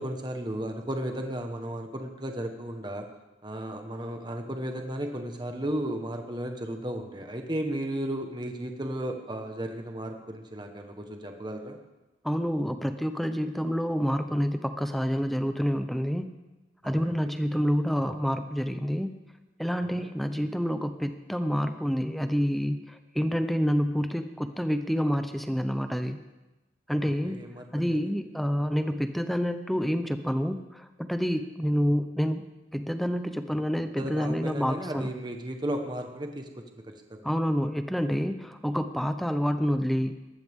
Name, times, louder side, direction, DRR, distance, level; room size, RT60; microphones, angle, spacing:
voice 1, 0.0-3.1 3.4-11.8 16.8-17.3 19.8-20.1 27.0-28.0 34.0-37.3, right 1 dB, 25° right, 4 dB, 1.3 m, -35 dB
voice 2, 12.2-16.3 16.8-19.1 19.6-26.2 26.9-27.4 27.7-35.1 37.2-40.1, equal, ahead, 8 dB, 0.7 m, -28 dB
19.5 x 14.5 x 3.7 m, 1.1 s
head